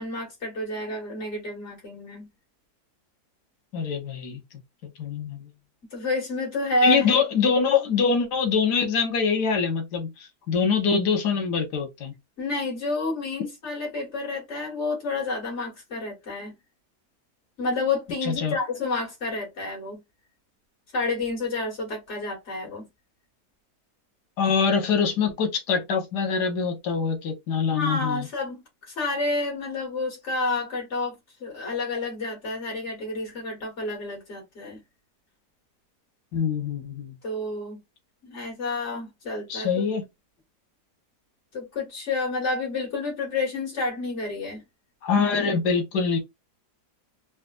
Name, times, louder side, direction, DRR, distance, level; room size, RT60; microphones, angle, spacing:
voice 1, 0.0-2.3 5.9-7.1 12.4-16.5 17.6-20.0 20.9-22.9 27.7-34.8 37.2-37.8 38.2-39.9 41.5-44.6, left 2 dB, 45° left, 2.0 m, -29 dB
voice 2, 3.7-4.4 5.0-5.5 6.8-12.1 18.2-18.5 24.4-28.3 36.3-37.1 39.5-40.0 45.0-46.2, left 5 dB, 85° left, 1.6 m, -24 dB
4.1 x 2.4 x 2.4 m
omnidirectional pair, 1.7 m